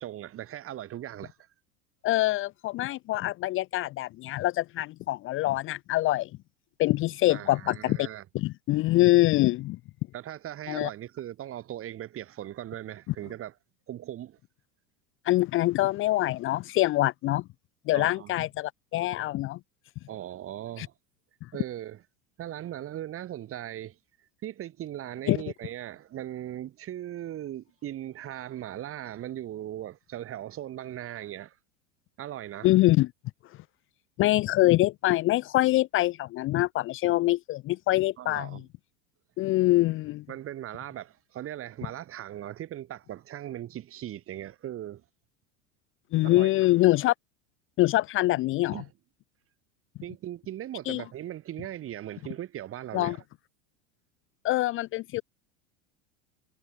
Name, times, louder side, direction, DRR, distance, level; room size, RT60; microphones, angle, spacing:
voice 1, 0.0-1.4 7.3-8.2 10.1-13.5 13.9-14.4 17.9-18.5 20.1-20.9 21.5-22.0 22.4-24.0 24.4-31.6 32.2-32.7 38.2-38.6 40.3-45.0 46.2-46.5 48.7-48.9 50.0-53.2, right 12 dB, 40° right, 2.7 m, -38 dB
voice 2, 2.0-6.3 6.8-8.1 8.3-9.8 10.7-10.9 15.3-17.4 17.9-19.6 20.8-20.9 25.3-25.4 32.6-33.1 34.2-38.6 39.4-40.2 46.1-47.1 47.8-48.7 50.9-51.0 52.9-53.2 54.4-55.2, left 17 dB, 35° left, 0.5 m, -24 dB
hypercardioid pair, 105°, 36 cm